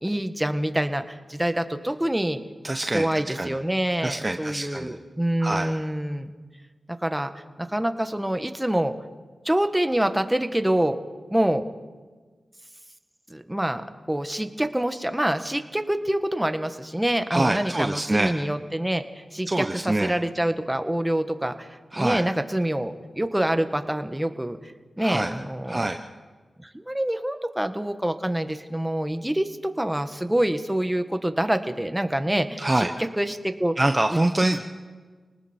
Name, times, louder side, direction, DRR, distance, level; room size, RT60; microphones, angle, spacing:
voice 1, 0.0-2.4 2.9-6.3 7.0-8.9 9.4-11.0 11.3-11.6 13.3-13.8 14.1-19.0 19.3-24.6 25.0-25.9 26.6-33.7 34.1-34.2, right 1 dB, 10° right, 8 dB, 1.6 m, -26 dB
voice 2, 2.6-3.1 3.3-3.5 4.0-4.9 5.4-5.7 17.3-18.3 19.5-20.1 21.9-22.2 25.0-25.3 25.7-26.0 32.6-32.9 33.8-34.6, right 2 dB, 25° right, 5 dB, 1.1 m, -25 dB
30.0 x 19.5 x 4.6 m, 1.4 s
cardioid pair, 55°, 0 cm